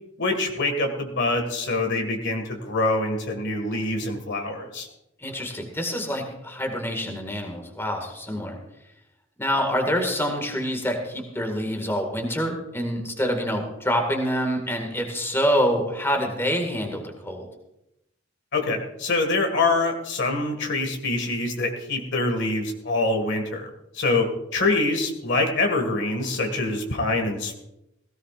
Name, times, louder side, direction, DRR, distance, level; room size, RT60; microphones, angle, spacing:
voice 1, 0.2-4.9 18.5-27.6, left 2 dB, 60° left, 4 dB, 2.1 m, -25 dB
voice 2, 5.2-8.6 9.4-17.5, equal, 10° left, 3 dB, 2.0 m, -26 dB
17.0 x 17.0 x 2.6 m, 0.85 s
head